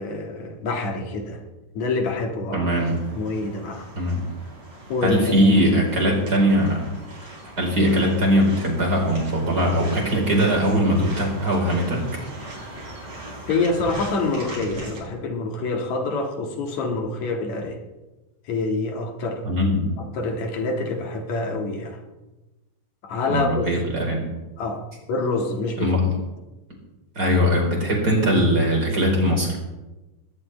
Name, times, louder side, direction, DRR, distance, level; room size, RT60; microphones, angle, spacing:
voice 1, 0.0-1.4 1.7-3.9 4.9-5.5 13.5-17.8 18.4-19.5 20.0-22.0 23.0-23.7 24.6-26.0, left 3 dB, 75° left, 2 dB, 3.3 m, -26 dB
voice 2, 2.5-3.0 4.0-4.2 5.0-6.8 7.4-12.1 19.4-19.9 23.3-24.3 25.8-26.0 27.2-29.6, equal, 30° right, 0 dB, 4.5 m, -20 dB
sound 1, 2.8-15.0, right 1 dB, 60° right, 6.8 m, -39 dB
20.0 x 18.0 x 3.3 m, 1.1 s
omnidirectional pair, 3.3 m